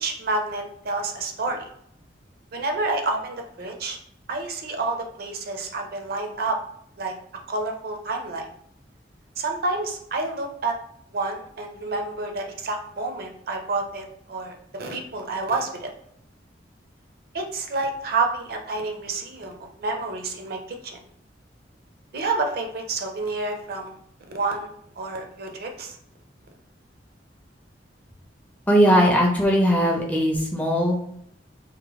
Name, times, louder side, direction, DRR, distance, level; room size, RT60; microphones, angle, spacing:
voice 1, 0.0-1.7 2.5-4.0 4.3-6.6 7.0-7.1 7.5-8.4 9.4-10.8 11.1-15.9 17.3-21.0 22.1-24.0 24.3-24.7 25.0-26.0, right 3 dB, 55° right, 3 dB, 0.5 m, -29 dB
voice 2, 28.7-31.0, equal, 10° left, 0 dB, 0.4 m, -19 dB
2.8 x 2.1 x 2.9 m, 0.69 s
head